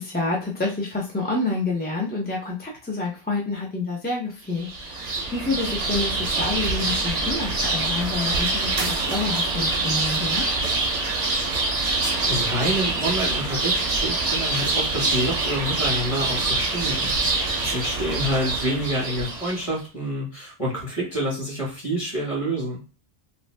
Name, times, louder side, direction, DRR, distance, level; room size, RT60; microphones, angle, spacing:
voice 1, 0.0-10.4, left 3 dB, 15° left, -3 dB, 0.4 m, -28 dB
sound 1, 4.6-19.7, right 3 dB, 45° right, 0.6 m, -25 dB
voice 2, 11.9-22.8, equal, 35° left, -3 dB, 1.2 m, -28 dB
2.6 x 2.1 x 3.2 m, 0.33 s
omnidirectional pair, 1.1 m